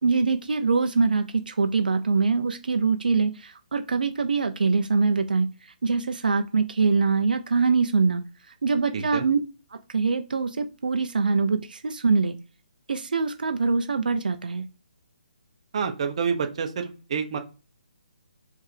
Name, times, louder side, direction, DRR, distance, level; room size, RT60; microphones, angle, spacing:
voice 1, 0.0-8.2 8.6-9.4 9.7-12.4 12.9-14.7, right 4 dB, 80° right, 7 dB, 0.5 m, -24 dB
voice 2, 8.9-9.3 15.7-17.4, right 6 dB, 45° right, 5 dB, 0.9 m, -28 dB
4.6 x 3.4 x 3.3 m, 0.35 s
hypercardioid pair, 160°, 5 cm